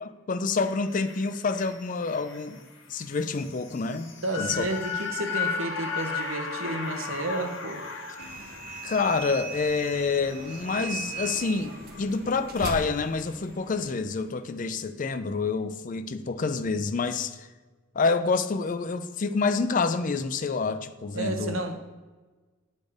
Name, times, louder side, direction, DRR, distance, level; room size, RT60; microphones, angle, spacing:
voice 1, 0.0-2.6 2.9-4.7 8.8-17.4 18.0-21.5, left 4 dB, 40° left, 11 dB, 0.4 m, -28 dB
sound 1, 0.6-12.9 13.3-13.4, left 5 dB, 60° left, 1.1 m, -37 dB
voice 2, 4.2-7.8 21.1-21.9, right 2 dB, 70° right, 5 dB, 1.0 m, -31 dB
sound 2, 8.2-14.0, right 4 dB, 45° right, 0.7 m, -38 dB
9.9 x 4.2 x 5.0 m, 1.3 s
head